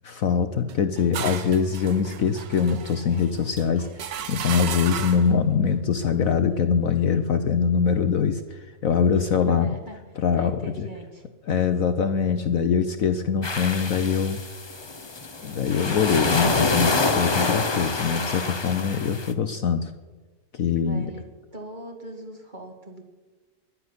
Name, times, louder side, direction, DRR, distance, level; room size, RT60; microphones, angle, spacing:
voice 1, 0.0-9.7 10.2-10.9 11.5-14.4 15.4-19.9 20.5-21.1, left 6 dB, 60° left, 9 dB, 1.1 m, -23 dB
sound 1, 0.7-5.4, right 8 dB, 90° right, 1.7 m, -34 dB
voice 2, 9.5-10.0 10.3-11.6 20.8-21.2 21.5-23.0, right 1 dB, 25° right, 3 dB, 2.1 m, -40 dB
sound 2, 13.4-19.3, left 3 dB, 25° left, 0.6 m, -26 dB
11.5 x 10.0 x 9.9 m, 1.3 s
omnidirectional pair, 1.9 m